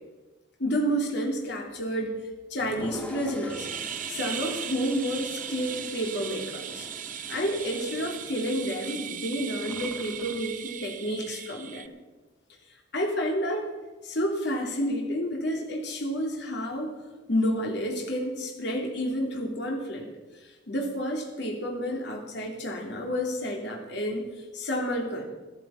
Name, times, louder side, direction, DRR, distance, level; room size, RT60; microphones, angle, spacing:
voice 1, 0.6-2.2 2.5-3.7 4.1-6.8 7.3-11.8 12.9-13.7 14.0-16.9 17.3-20.1 20.7-24.3 24.5-25.2, equal, 65° left, 0 dB, 3.3 m, -30 dB
Toilet flush, 2.6-10.5, equal, 5° left, 1.4 m, -44 dB
sound 1, 3.5-11.9, right 10 dB, 45° right, 0.6 m, -38 dB
14.0 x 13.5 x 5.8 m, 1.2 s
head